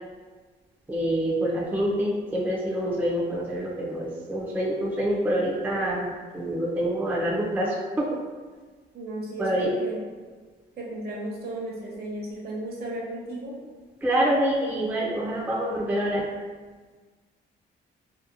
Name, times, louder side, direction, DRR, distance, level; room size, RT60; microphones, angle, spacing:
voice 1, 0.9-8.1 9.4-9.8 14.0-16.3, right 1 dB, 10° right, -4 dB, 0.4 m, -26 dB
voice 2, 8.9-10.0 10.8-13.5, right 1 dB, 55° right, -3 dB, 0.8 m, -34 dB
2.7 x 2.1 x 2.5 m, 1.4 s
cardioid pair, 90°, 20 cm